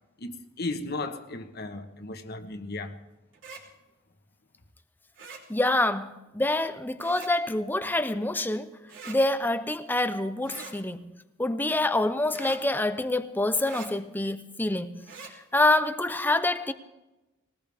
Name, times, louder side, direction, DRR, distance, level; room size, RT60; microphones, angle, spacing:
voice 1, 0.2-2.9, left 2 dB, 55° left, 1.3 m, -35 dB
sound 1, 3.3-3.6 5.1-5.4 7.0-7.3 8.9-9.2 10.4-10.7 12.3-12.6 13.6-13.9 15.0-15.3, right 5 dB, 70° right, 3.5 m, -43 dB
voice 2, 5.5-8.7 9.1-11.1 11.4-15.0 15.5-16.7, left 2 dB, 10° left, 0.7 m, -26 dB
21.0 x 19.0 x 3.6 m
head